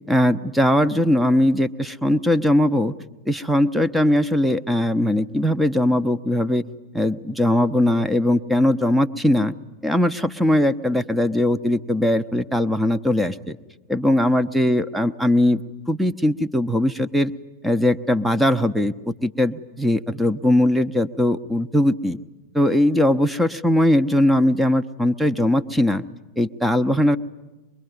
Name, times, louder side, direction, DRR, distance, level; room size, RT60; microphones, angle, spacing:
voice 1, 0.1-2.9 3.3-6.6 6.9-9.5 9.8-13.6 13.9-15.6 15.9-17.3 17.6-22.2 22.5-26.0 26.4-27.2, left 1 dB, 5° right, 10 dB, 0.8 m, -20 dB
24.0 x 22.5 x 9.5 m, 1.1 s
figure-of-eight pair, 90°, 0 cm